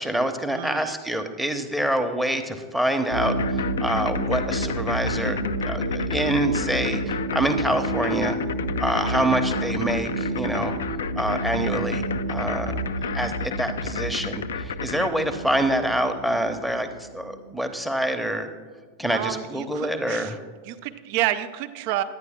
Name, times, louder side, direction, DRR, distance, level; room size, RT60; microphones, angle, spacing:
voice 1, 0.0-8.4 8.8-10.8 11.2-12.7 13.1-18.5 19.0-20.4, right 1 dB, ahead, 9 dB, 0.9 m, -26 dB
voice 2, 0.5-1.0 8.8-9.3 19.1-20.4 20.6-22.0, right 13 dB, 45° right, 11 dB, 0.5 m, -30 dB
sound 1, 3.1-17.5, right 1 dB, 85° right, 1.0 m, -29 dB
sound 2, 3.2-15.1, left 8 dB, 60° left, 0.3 m, -32 dB
11.0 x 9.6 x 3.6 m, 1.6 s
figure-of-eight pair, 90°, 0 cm